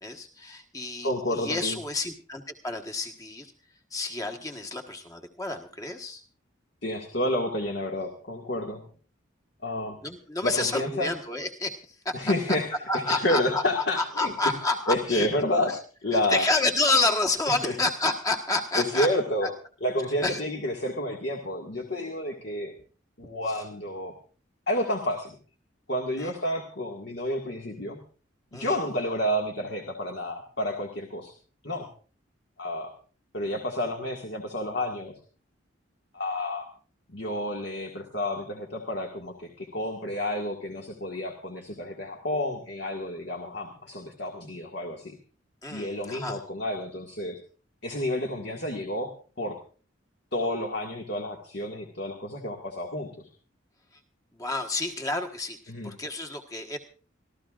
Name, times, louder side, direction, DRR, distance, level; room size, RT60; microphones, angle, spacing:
voice 1, 0.0-3.5 3.9-6.2 10.0-12.2 12.9-15.3 15.7-15.8 16.1-19.1 19.4-19.5 20.2-20.4 23.5-23.6 26.2-26.3 28.5-28.8 45.6-46.4 54.3-55.6 55.8-56.8, left 2 dB, 15° left, 4 dB, 1.4 m, -29 dB
voice 2, 1.0-1.8 6.8-8.8 9.6-10.0 10.4-11.1 12.1-12.7 13.1-14.3 14.9-15.7 16.0-16.5 17.5-17.7 18.8-19.5 19.8-22.7 23.2-24.1 24.7-25.3 25.9-28.0 28.5-31.3 31.6-31.9 32.6-32.9 33.3-35.1 36.1-36.7 37.1-45.1 45.7-47.4 47.8-49.1 49.4-49.6 50.3-53.3 55.7-55.9, left 1 dB, 55° left, 2 dB, 1.9 m, -30 dB
26.0 x 14.0 x 2.5 m, 0.39 s
head